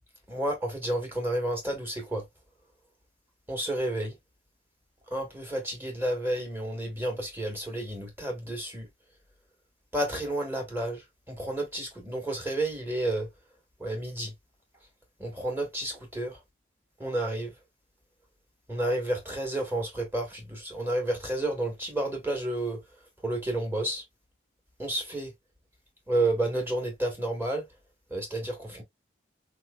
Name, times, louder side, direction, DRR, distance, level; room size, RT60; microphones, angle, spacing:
voice 1, 0.3-2.2 3.5-4.1 5.1-8.9 9.9-13.3 13.8-14.3 15.2-16.4 17.0-17.5 18.7-22.8 23.2-24.0 24.8-25.3 26.1-27.6 28.1-28.8, right 1 dB, 10° right, 1.2 m, -31 dB
3.6 x 3.0 x 2.3 m
head